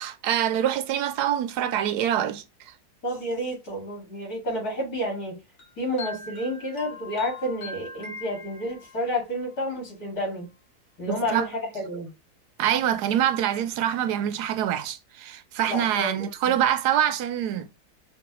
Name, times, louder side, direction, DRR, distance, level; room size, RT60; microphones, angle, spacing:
voice 1, 0.0-2.4 11.1-11.5 12.6-17.7, right 10 dB, 80° right, 1.1 m, -25 dB
voice 2, 3.0-5.3 5.8-10.5 11.0-12.1 15.6-16.3, equal, 65° left, 2.7 m, -30 dB
sound 1, 5.6-9.1, left 2 dB, 50° left, 1.5 m, -41 dB
5.3 x 2.6 x 2.8 m
omnidirectional pair, 1.7 m